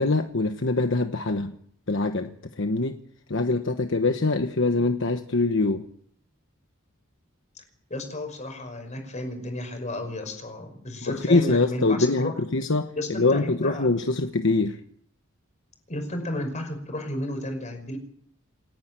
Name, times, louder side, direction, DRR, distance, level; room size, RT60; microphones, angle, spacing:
voice 1, 0.0-1.5 1.9-3.0 3.3-5.8 11.0-12.9 13.2-14.8, left 3 dB, 60° left, 6 dB, 1.1 m, -24 dB
voice 2, 7.9-12.3 13.0-13.9 15.9-18.0, left 1 dB, 35° left, 6 dB, 5.5 m, -33 dB
29.0 x 10.5 x 9.0 m, 0.64 s
head